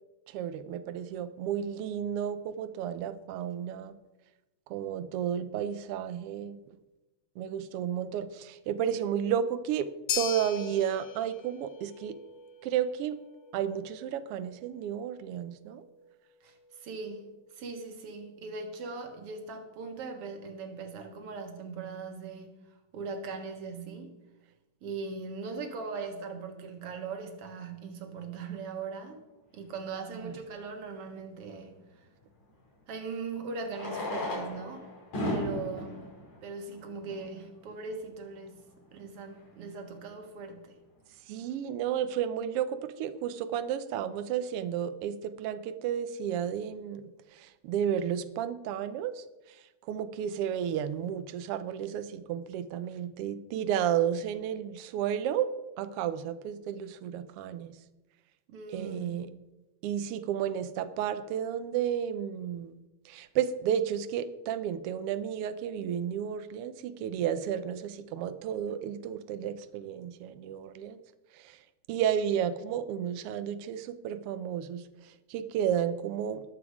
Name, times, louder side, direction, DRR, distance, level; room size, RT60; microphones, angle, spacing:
voice 1, 0.3-3.9 4.7-6.6 7.4-9.9 10.1-12.2 12.6-13.2 13.5-15.8 30.2-30.3 41.3-49.2 49.9-55.5 55.8-57.7 58.7-59.3 59.8-62.7 63.0-71.0 71.3-71.6 71.9-76.4, right 9 dB, 90° right, 11 dB, 1.3 m, -32 dB
sound 1, 10.1-18.5, left 7 dB, 55° left, 2.5 m, -42 dB
voice 2, 16.4-22.6 22.9-24.2 24.8-29.2 29.5-32.1 32.9-34.9 35.3-36.0 36.4-38.6 38.9-40.8 58.5-59.1, right 4 dB, 55° right, 5 dB, 2.3 m, -40 dB
Fireworks, 30.1-30.2 32.5-32.6 33.6-37.4 38.2-38.3 38.4-38.5 38.7-38.9 39.4-39.6, left 1 dB, 85° left, 7.3 m, -36 dB
20.5 x 7.1 x 4.9 m, 1.0 s
omnidirectional pair, 3.4 m